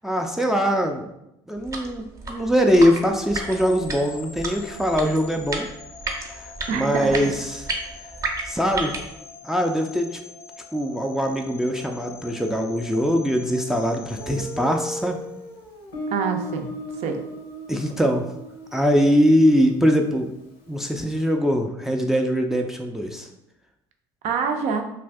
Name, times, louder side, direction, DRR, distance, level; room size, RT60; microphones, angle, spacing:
voice 1, 0.0-1.1 1.5-5.7 6.2-7.6 8.5-9.0 9.4-10.2 10.7-15.2 17.7-18.3 18.7-20.3 20.7-23.3, equal, 5° right, 3 dB, 0.4 m, -22 dB
sound 1, 1.6-9.1, right 2 dB, 25° right, 0.8 m, -33 dB
sound 2, 3.2-15.4, left 3 dB, 55° left, 0.5 m, -44 dB
voice 2, 6.7-7.3 16.1-16.7 17.0-17.2 24.2-24.8, right 6 dB, 65° right, 5 dB, 0.5 m, -26 dB
Guitar, 14.2-20.8, left 1 dB, 80° left, 0.8 m, -36 dB
2.6 x 2.5 x 3.4 m, 0.85 s
hypercardioid pair, 65°, 13 cm